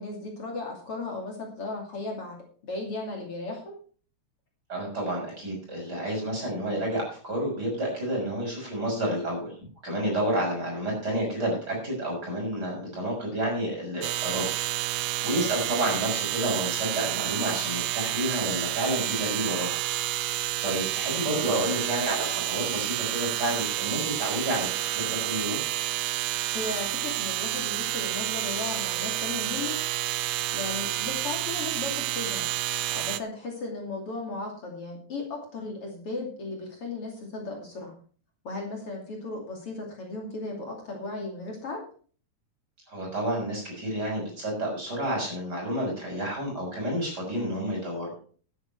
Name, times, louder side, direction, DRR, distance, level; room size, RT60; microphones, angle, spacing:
voice 1, 0.0-2.3 2.7-3.8 15.3-15.4 21.3-21.6 26.5-29.8 30.5-32.4 32.9-37.9 38.4-41.8, left 3 dB, 50° left, 0 dB, 3.4 m, -36 dB
voice 2, 4.7-9.6 9.8-14.5 15.2-19.8 20.6-25.6 42.9-48.2, right 1 dB, 30° right, -1 dB, 7.0 m, -30 dB
sound 1, 14.0-33.2, right 13 dB, 70° right, 1.6 m, -29 dB
12.5 x 10.0 x 4.6 m, 0.43 s
omnidirectional pair, 3.3 m